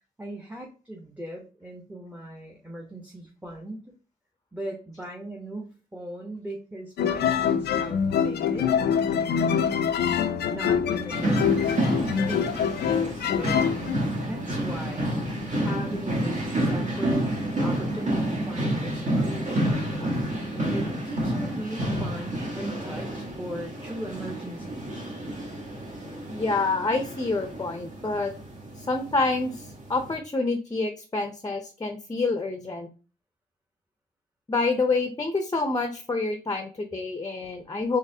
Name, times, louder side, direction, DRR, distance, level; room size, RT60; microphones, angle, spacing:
voice 1, 0.2-3.9 4.5-8.8 9.4-13.9 14.2-15.3 15.6-17.3 17.6-19.8 20.7-25.1, right 1 dB, 10° right, 0 dB, 0.8 m, -39 dB
sound 1, 7.0-14.0, left 7 dB, 75° left, 0.4 m, -25 dB
sound 2, 11.1-30.2, right 1 dB, 45° right, 1.1 m, -29 dB
sound 3, 13.4-19.0, right 1 dB, 65° right, 1.0 m, -42 dB
voice 2, 26.3-28.3 28.8-32.9 34.5-38.0, left 3 dB, 20° left, 5 dB, 0.6 m, -27 dB
3.9 x 3.1 x 2.7 m, 0.36 s
cardioid pair, 70°, 17 cm